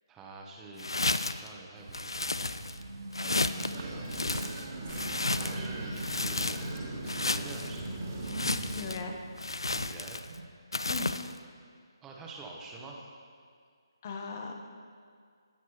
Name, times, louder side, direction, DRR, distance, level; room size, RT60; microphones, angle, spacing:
voice 1, 0.1-2.6 3.1-4.8 5.3-6.9 7.2-8.1 9.7-10.2 12.0-13.1, right 3 dB, 10° right, -1 dB, 1.0 m, -48 dB
sound 1, 0.8-1.5 1.9-2.8 3.1-3.7 4.1-5.7 6.0-6.8 7.1-7.7 8.2-9.0 9.4-10.3 10.7-11.3, left 2 dB, 75° left, 0.4 m, -32 dB
sound 2, 1.7-10.5, right 2 dB, 55° right, 0.8 m, -45 dB
sound 3, 3.6-9.0, right 2 dB, 35° right, 1.7 m, -38 dB
voice 2, 8.4-9.1 10.9-11.1 14.0-14.5, left 4 dB, 35° left, 3 dB, 1.0 m, -38 dB
18.0 x 6.0 x 3.0 m, 2.1 s
figure-of-eight pair, 145°, 2 cm